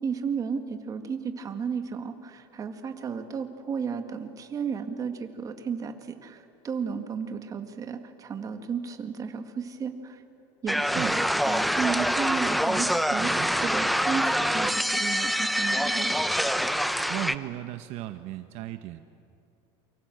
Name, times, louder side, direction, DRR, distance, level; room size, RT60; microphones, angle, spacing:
voice 1, 0.0-10.2 10.6-13.3 13.6-16.1, right 6 dB, 30° right, 7 dB, 1.9 m, -33 dB
sound 1, 10.7-17.3, equal, ahead, 0.7 m, -25 dB
voice 2, 13.2-13.5 17.1-19.0, right 15 dB, 60° right, 9 dB, 1.0 m, -36 dB
29.5 x 24.5 x 7.8 m, 2.5 s
cardioid pair, 145°, 12 cm